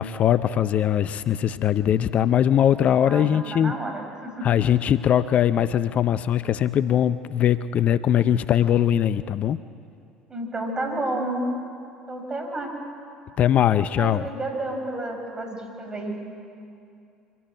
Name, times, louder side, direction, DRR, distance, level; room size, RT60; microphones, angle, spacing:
voice 1, 0.0-3.7 4.4-9.6 13.4-14.3, left 10 dB, 50° left, 14 dB, 0.6 m, -21 dB
voice 2, 3.1-4.5 10.3-11.5 12.1-12.7 14.0-16.2, right 2 dB, 25° right, 3 dB, 5.8 m, -30 dB
25.0 x 17.0 x 8.9 m, 2.5 s
hypercardioid pair, 65°, 3 cm